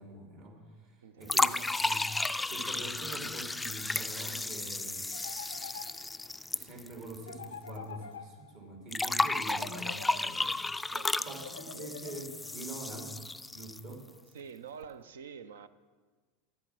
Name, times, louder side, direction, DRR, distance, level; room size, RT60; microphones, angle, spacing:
voice 1, 0.0-5.1 6.5-10.9 11.2-13.2 13.5-14.1, right 2 dB, 55° right, 2.8 m, -45 dB
voice 2, 1.0-1.6 10.9-11.8 14.3-15.7, right 6 dB, 80° right, 0.5 m, -48 dB
sound 1, 1.3-7.4 7.7-7.8 8.9-13.9, left 2 dB, 10° left, 0.3 m, -33 dB
sound 2, 5.1-6.4 7.2-8.8 9.4-10.6 11.4-12.6, left 6 dB, 85° left, 0.4 m, -47 dB
11.5 x 8.4 x 6.1 m
hypercardioid pair, 85°, 0 cm